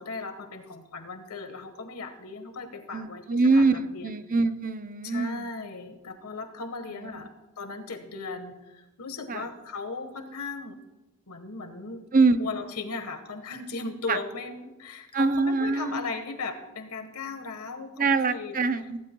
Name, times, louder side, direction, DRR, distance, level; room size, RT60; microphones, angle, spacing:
voice 1, 0.0-4.1 5.0-10.8 11.3-12.1 12.4-18.6, left 4 dB, 85° left, 7 dB, 1.4 m, -37 dB
voice 2, 2.9-5.5 6.9-7.3 9.3-9.5 12.1-12.4 14.1-14.2 15.1-16.1 18.0-19.0, right 3 dB, 40° right, 10 dB, 0.6 m, -24 dB
16.0 x 16.0 x 2.3 m, 1.0 s
head